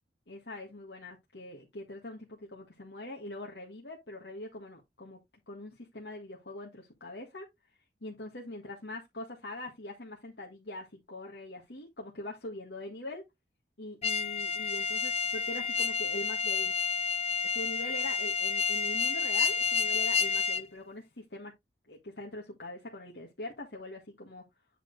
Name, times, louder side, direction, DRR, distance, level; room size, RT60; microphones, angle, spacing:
voice 1, 0.3-5.2 5.5-7.5 8.0-13.2 13.8-17.0 17.4-21.5 21.9-24.4, left 1 dB, 70° left, 1.7 m, -43 dB
sound 1, 14.0-20.6, left 5 dB, 35° left, 0.4 m, -30 dB
8.9 x 4.3 x 3.2 m
head